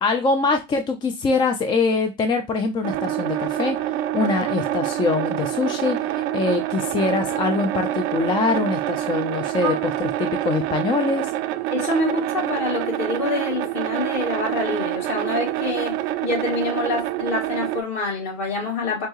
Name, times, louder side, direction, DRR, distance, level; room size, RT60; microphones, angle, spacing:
voice 1, 0.0-3.8 4.1-11.3, left 4 dB, 15° left, 0.3 m, -23 dB
sound 1, 2.8-17.8, right 14 dB, 55° right, 0.4 m, -26 dB
voice 2, 11.7-19.1, left 2 dB, 40° left, 2.7 m, -26 dB
4.4 x 2.8 x 3.0 m
hypercardioid pair, 85°, 39 cm